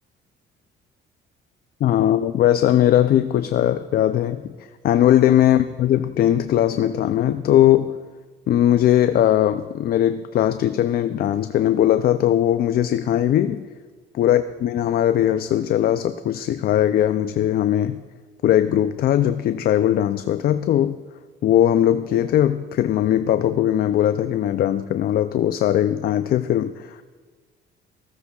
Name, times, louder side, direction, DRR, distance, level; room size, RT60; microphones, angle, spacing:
voice 1, 1.8-4.5 4.8-8.0 8.5-13.6 14.1-18.0 18.4-21.0 21.4-27.0, left 11 dB, 50° left, 10 dB, 0.4 m, -19 dB
15.0 x 15.0 x 2.3 m, 1.5 s
cardioid pair, 120°, 20 cm